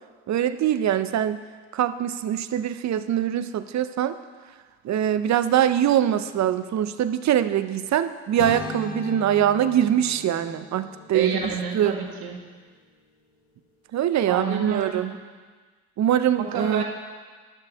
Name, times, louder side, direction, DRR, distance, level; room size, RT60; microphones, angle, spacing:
voice 1, 0.3-1.4 1.7-4.1 4.8-11.4 11.7-12.0 13.9-15.1 16.0-16.8, right 10 dB, 45° right, 12 dB, 0.6 m, -23 dB
sound 1, 8.4-12.4, left 3 dB, 85° left, 1.5 m, -38 dB
voice 2, 11.1-12.4 14.3-15.0 16.5-16.8, right 6 dB, 65° right, -1 dB, 1.8 m, -28 dB
12.0 x 6.6 x 3.5 m, 1.5 s
hypercardioid pair, 55°, 40 cm